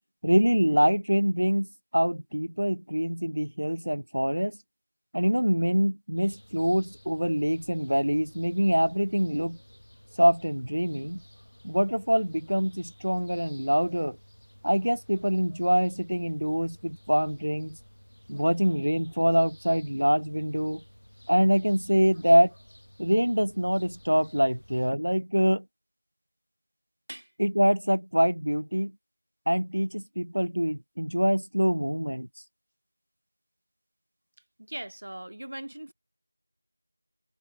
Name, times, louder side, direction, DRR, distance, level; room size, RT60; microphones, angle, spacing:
voice 1, 0.2-1.7 1.9-4.6 5.1-9.6 10.2-11.2 11.6-14.2 14.6-17.8 18.3-20.8 21.3-22.5 23.0-25.6 27.4-28.9 29.5-32.3, equal, 70° right, 0.6 m, -25 dB
sound 1, 6.2-24.9, equal, 70° left, 4.8 m, -54 dB
voice 2, 34.6-35.9, right 1 dB, 30° right, 0.7 m, -39 dB
figure-of-eight pair, 180°, 0 cm